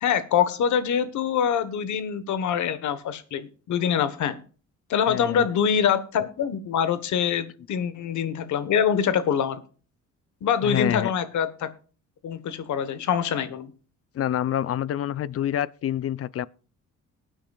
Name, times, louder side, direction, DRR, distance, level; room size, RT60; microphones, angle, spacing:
voice 1, 0.0-4.4 4.9-9.6 10.4-11.7 12.2-13.7, left 8 dB, 70° left, 1.3 m, -24 dB
voice 2, 5.1-5.5 10.6-11.1 14.1-16.5, left 11 dB, 50° left, 0.6 m, -27 dB
19.5 x 8.9 x 2.4 m
cardioid pair, 90°, 30 cm